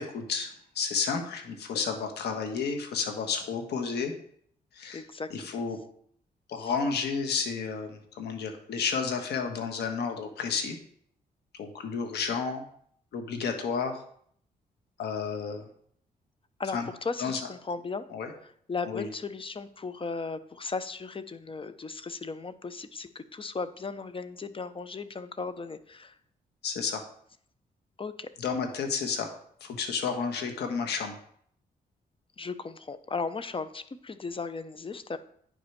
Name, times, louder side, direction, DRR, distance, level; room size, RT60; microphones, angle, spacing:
voice 1, 0.0-4.1 4.7-5.8 6.5-10.8 11.5-12.6 13.1-14.0 15.0-15.7 16.7-16.9 17.2-17.5 18.1-18.3 18.8-19.1 26.6-27.0 28.4-29.3 29.6-31.2, left 5 dB, 85° left, 5 dB, 1.4 m, -31 dB
voice 2, 4.9-5.3 6.6-6.7 8.8-8.9 16.6-18.0 18.7-26.1 28.0-28.3 32.4-35.2, left 4 dB, 30° left, 12 dB, 0.8 m, -36 dB
9.3 x 5.1 x 5.9 m, 0.62 s
cardioid pair, 70°, 17 cm